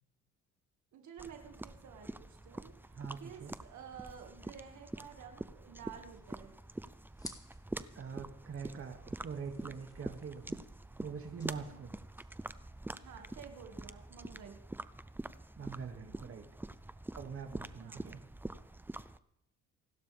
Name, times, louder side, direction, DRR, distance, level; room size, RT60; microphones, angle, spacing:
voice 1, 0.9-6.6 11.6-11.9 12.9-14.6 17.8-18.0, right 7 dB, 70° right, 4 dB, 2.1 m, -52 dB
sound 1, 1.2-19.2, right 2 dB, 5° right, 0.6 m, -46 dB
voice 2, 2.9-3.6 7.9-10.7 11.0-11.9 15.6-16.4 17.1-18.2, right 6 dB, 45° right, 4 dB, 2.3 m, -44 dB
sound 2, 5.8-13.4, left 1 dB, 10° left, 1.8 m, -58 dB
28.5 x 12.0 x 3.5 m, 0.82 s
cardioid pair, 90°, 30 cm